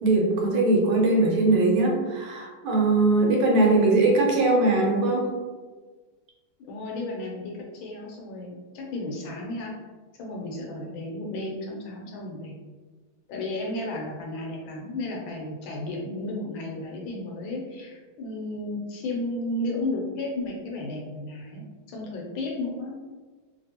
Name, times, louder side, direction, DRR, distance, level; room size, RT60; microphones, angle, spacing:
voice 1, 0.0-5.3, right 2 dB, 75° right, -1 dB, 1.5 m, -21 dB
voice 2, 6.6-9.7 10.2-12.5 13.3-22.9, left 2 dB, 75° left, -1 dB, 1.4 m, -33 dB
3.2 x 2.7 x 2.8 m, 1.3 s
omnidirectional pair, 2.4 m